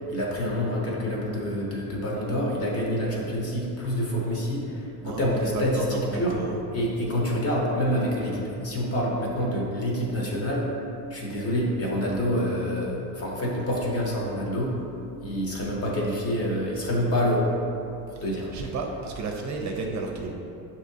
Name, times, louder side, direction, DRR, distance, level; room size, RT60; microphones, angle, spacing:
voice 1, 0.1-6.4 6.7-10.7 11.1-14.8 15.2-17.5 18.1-18.5, equal, 40° left, -3 dB, 0.9 m, -27 dB
voice 2, 5.0-6.6 18.2-18.3 18.5-20.3, right 4 dB, 50° right, 1 dB, 0.5 m, -32 dB
6.6 x 2.8 x 2.7 m, 2.8 s
cardioid pair, 135°, 39 cm